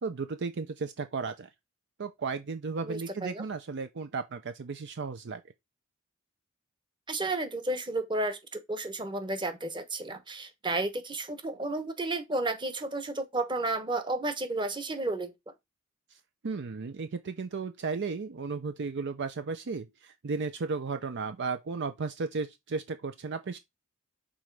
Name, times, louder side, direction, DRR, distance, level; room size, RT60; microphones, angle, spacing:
voice 1, 0.0-1.5 2.0-5.4 16.4-23.6, right 4 dB, 55° right, 0.5 m, -34 dB
voice 2, 2.8-3.4 7.1-15.3, right 2 dB, 20° right, 1.1 m, -32 dB
6.3 x 3.9 x 4.7 m
head